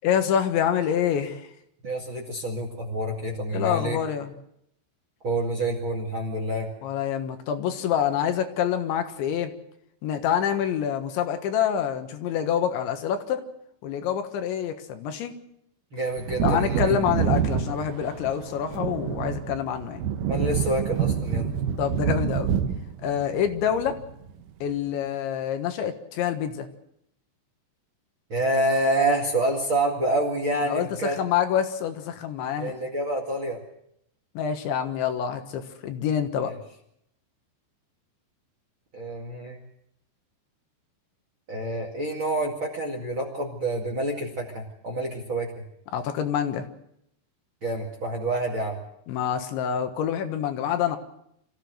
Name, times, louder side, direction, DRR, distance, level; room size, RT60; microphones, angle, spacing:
voice 1, 0.0-1.5 3.5-4.3 6.8-9.5 10.0-13.4 13.8-15.3 16.4-20.0 21.8-22.5 23.0-24.0 24.6-26.7 30.7-32.7 34.4-36.5 45.9-46.7 49.1-51.0, left 9 dB, 75° left, 7 dB, 3.7 m, -26 dB
voice 2, 1.8-4.0 5.2-6.7 15.9-17.0 20.3-21.5 28.3-31.2 32.6-33.6 36.4-36.6 38.9-39.6 41.5-45.6 47.6-48.8, right 1 dB, 40° right, 2 dB, 2.0 m, -27 dB
Wind / Thunder, 16.1-24.4 24.7-24.8, right 8 dB, 90° right, 1.8 m, -27 dB
26.0 x 15.0 x 7.8 m, 0.76 s
omnidirectional pair, 5.4 m